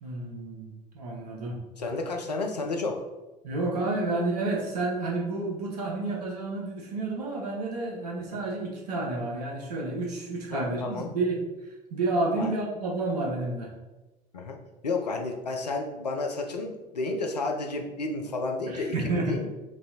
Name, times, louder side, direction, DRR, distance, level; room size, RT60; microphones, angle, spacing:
voice 1, 0.0-1.6 3.4-11.4 11.9-13.7 18.7-19.4, right 2 dB, 75° right, -1 dB, 0.9 m, -30 dB
voice 2, 1.8-3.0 10.5-11.1 12.4-12.5 14.3-14.6 14.8-19.5, left 3 dB, 85° left, 3 dB, 0.5 m, -31 dB
6.0 x 2.7 x 2.9 m, 1.1 s
figure-of-eight pair, 60°, 20 cm